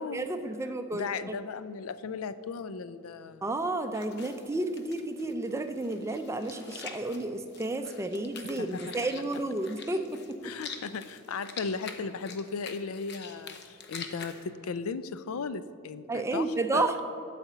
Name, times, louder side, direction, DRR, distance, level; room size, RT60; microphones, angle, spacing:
voice 1, 0.0-1.1 3.4-10.5 16.1-17.0, right 2 dB, 15° right, 8 dB, 0.4 m, -31 dB
voice 2, 0.9-3.5 8.6-8.9 10.4-16.5 16.7-16.9, left 5 dB, 90° left, 14 dB, 0.4 m, -36 dB
sound 1, 3.9-14.5, left 5 dB, 50° left, 0.7 m, -46 dB
12.0 x 4.2 x 7.9 m, 2.7 s
head